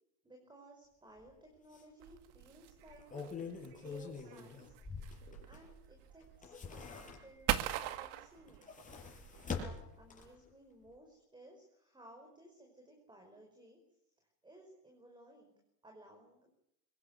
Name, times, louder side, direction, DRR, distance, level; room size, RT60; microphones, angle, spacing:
voice 1, 0.2-5.2 5.5-8.7 9.2-13.8 14.2-15.5 15.8-16.5, right 1 dB, 10° right, 2 dB, 5.2 m, -59 dB
sound 1, 1.2-1.3 1.7-1.8 2.8-5.8 6.2-7.6 8.4-10.5 10.9-11.0, left 5 dB, 15° left, 6.8 m, -45 dB
sound 2, 2.0-10.4, right 13 dB, 60° right, 2.0 m, -42 dB
23.5 x 21.0 x 9.6 m, 0.79 s
supercardioid pair, 145°, 47 cm